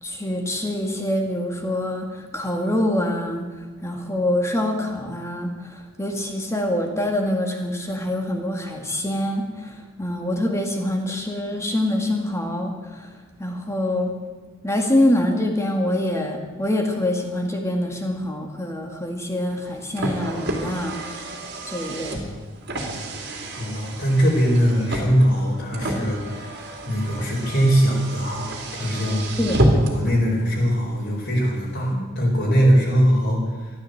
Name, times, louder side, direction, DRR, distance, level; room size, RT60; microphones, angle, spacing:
voice 1, 0.0-3.4 3.8-13.1 13.4-14.1 14.6-21.4 21.7-22.2 29.4-29.5 31.9-32.0, left 1 dB, 15° left, 3 dB, 2.0 m, -25 dB
Car, 19.5-30.1, right 1 dB, 50° right, 2.8 m, -28 dB
voice 2, 23.6-29.3 29.9-33.7, equal, 50° left, -4 dB, 4.5 m, -21 dB
14.0 x 12.0 x 7.9 m, 1.3 s
head